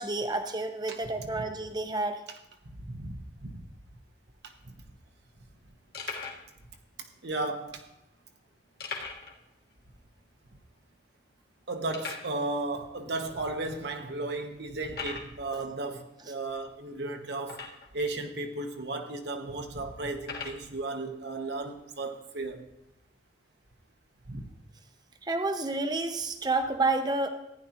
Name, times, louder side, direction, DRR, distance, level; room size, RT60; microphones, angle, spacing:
voice 1, 0.0-2.2 15.5-15.6 25.2-27.3, right 2 dB, 20° right, 7 dB, 0.7 m, -30 dB
voice 2, 0.9-1.3 2.8-3.7 6.1-6.2 7.2-7.9 11.7-17.6 17.9-22.6 24.3-24.4, right 2 dB, 60° right, 5 dB, 1.0 m, -35 dB
sound 1, 4.5-4.6 4.7-4.9 5.4-5.5 5.9-6.5 7.2-7.3 8.8-9.4 9.7-9.8 10.2-10.3 10.9-11.0 11.9-12.3 13.1-13.2 13.8-13.9 14.9-15.4 17.4-18.0 18.8-18.9 20.2-20.6, left 5 dB, 55° left, 1.7 m, -39 dB
15.0 x 10.0 x 2.9 m, 0.87 s
head